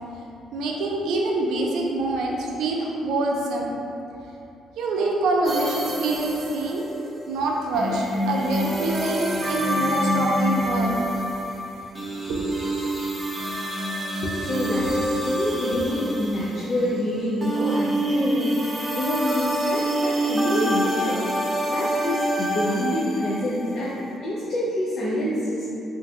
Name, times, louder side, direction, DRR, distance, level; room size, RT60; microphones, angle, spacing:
voice 1, 0.5-3.7 4.8-6.8 7.3-11.1 12.3-12.7, right 2 dB, 85° right, -1 dB, 0.4 m, -25 dB
sound 1, 5.5-17.1 17.4-23.6, equal, 15° right, 0.4 m, -26 dB
voice 2, 14.2-21.3 21.7-24.0 24.2-25.7, left 1 dB, 55° left, -8 dB, 0.5 m, -27 dB
2.6 x 2.2 x 3.5 m, 2.8 s
cardioid pair, 130°, 0 cm